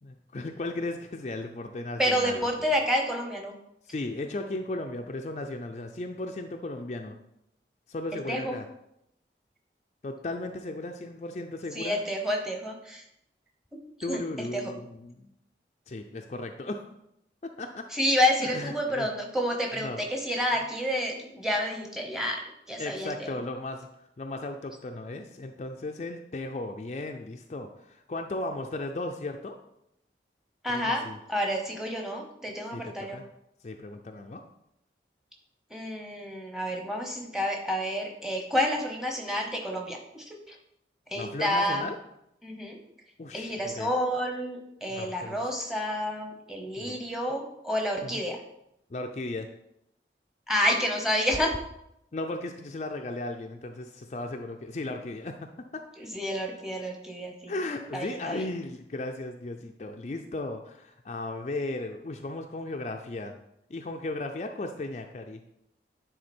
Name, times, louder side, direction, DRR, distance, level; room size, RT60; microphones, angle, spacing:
voice 1, 0.0-2.7 3.9-7.2 7.9-8.6 10.0-12.0 14.0-15.3 15.9-16.9 17.4-17.9 18.4-19.1 19.8-20.0 22.8-23.9 24.2-29.6 30.7-31.2 32.7-33.2 33.6-34.4 41.1-42.0 43.2-43.9 44.9-45.4 46.8-47.0 48.0-48.2 48.9-49.5 52.1-55.8 57.5-63.4 63.7-65.5, left 2 dB, 40° left, 4 dB, 0.4 m, -36 dB
voice 2, 2.0-3.6 8.3-8.5 11.7-13.0 14.1-14.7 17.9-23.3 30.6-33.2 35.7-40.6 41.1-41.8 42.4-42.8 43.3-48.4 50.5-51.6 56.0-57.5 57.9-58.5, equal, 5° right, 1 dB, 0.9 m, -29 dB
9.4 x 3.8 x 4.3 m, 0.81 s
head